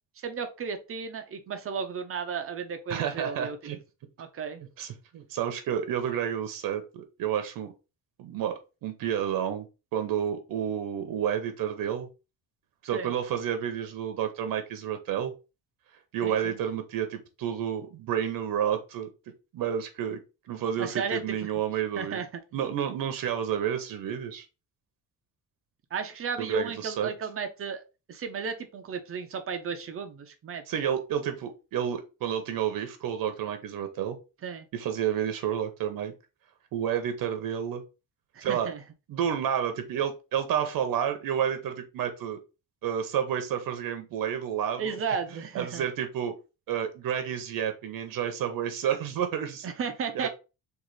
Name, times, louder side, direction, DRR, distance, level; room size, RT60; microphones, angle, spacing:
voice 1, 0.2-3.6 4.2-4.6 12.9-13.1 16.2-16.6 20.8-21.4 22.0-22.3 25.9-27.8 28.1-30.6 34.4-34.7 38.3-38.8 44.8-45.9 49.6-50.3, right 6 dB, 40° right, 7 dB, 0.6 m, -34 dB
voice 2, 2.9-3.8 4.8-7.7 8.2-9.7 9.9-12.1 12.8-15.3 16.1-19.1 19.5-22.2 22.5-24.5 26.4-27.1 30.7-34.2 34.7-36.1 36.7-37.8 38.4-38.7 39.1-42.4 42.8-44.9 45.5-46.3 46.7-49.7 50.1-50.3, right 9 dB, 70° right, 6 dB, 0.8 m, -30 dB
3.9 x 2.6 x 4.7 m, 0.30 s
cardioid pair, 175°, 36 cm